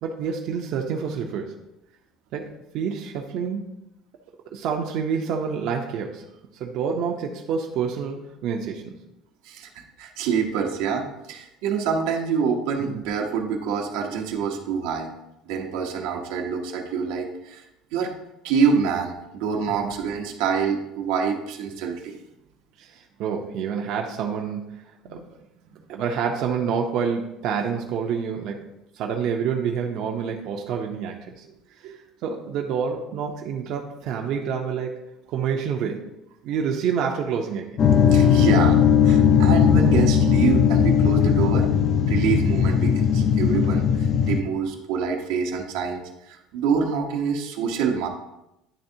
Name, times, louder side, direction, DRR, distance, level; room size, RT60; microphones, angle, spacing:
voice 1, 0.0-1.6 2.3-3.8 4.5-6.2 6.6-8.9 12.9-13.0 19.7-19.9 22.8-24.8 25.1-25.2 25.9-28.6 28.9-31.4 31.8-31.9 32.2-35.0 35.3-36.1 36.4-37.8, right 6 dB, 55° right, 1 dB, 0.6 m, -28 dB
voice 2, 9.4-15.1 15.5-17.6 17.9-18.1 18.4-22.1 25.0-25.3 31.8-31.9 38.1-38.8 39.0-41.7 42.1-48.1, right 6 dB, 85° right, 2 dB, 0.9 m, -26 dB
sound 1, 37.8-44.4, left 7 dB, 40° left, 0.4 m, -18 dB
10.0 x 3.4 x 2.8 m, 0.89 s
cardioid pair, 145°, 0 cm